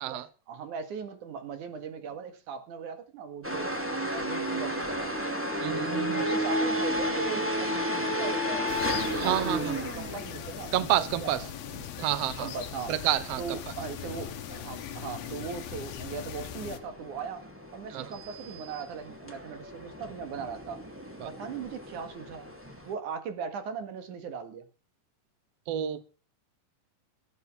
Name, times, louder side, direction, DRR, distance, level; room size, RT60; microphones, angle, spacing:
voice 1, 0.1-3.7 4.1-5.2 5.9-8.8 9.1-10.9 11.2-12.1 12.4-12.9 13.4-17.4 17.7-20.8 21.2-22.5 22.8-24.7, right 6 dB, 60° right, 3.1 m, -39 dB
sound 1, 3.4-22.9, equal, 5° right, 1.8 m, -34 dB
voice 2, 5.6-6.2 9.1-9.7 10.7-11.4 12.0-12.5 12.9-13.4 17.9-18.1 21.2-21.3 25.7-26.0, right 13 dB, 80° right, 1.4 m, -29 dB
sound 2, 8.7-16.8, left 10 dB, 80° left, 3.1 m, -40 dB
17.0 x 9.2 x 6.1 m
omnidirectional pair, 4.3 m